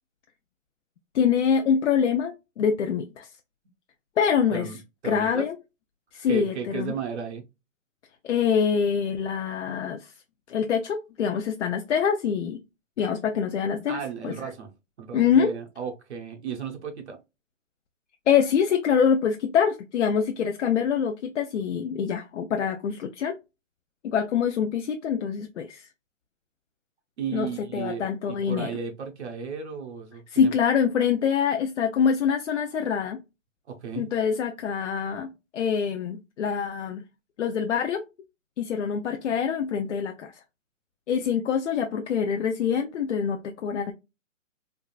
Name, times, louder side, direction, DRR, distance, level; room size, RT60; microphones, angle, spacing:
voice 1, 1.1-3.3 4.2-4.7 5.0-5.6 6.1-6.9 8.2-10.1 10.5-12.6 13.0-14.5 15.1-15.5 18.3-23.4 24.0-25.9 27.3-28.7 30.3-33.2 33.9-37.0 37.4-38.0 38.6-40.4 41.1-43.9, left 7 dB, 65° left, 0.5 m, -25 dB
voice 2, 5.0-5.4 6.3-7.4 13.9-14.7 15.0-17.2 27.2-30.5 33.7-34.1, right 7 dB, 55° right, 0.8 m, -34 dB
3.5 x 2.4 x 2.2 m
hypercardioid pair, 160°, 39 cm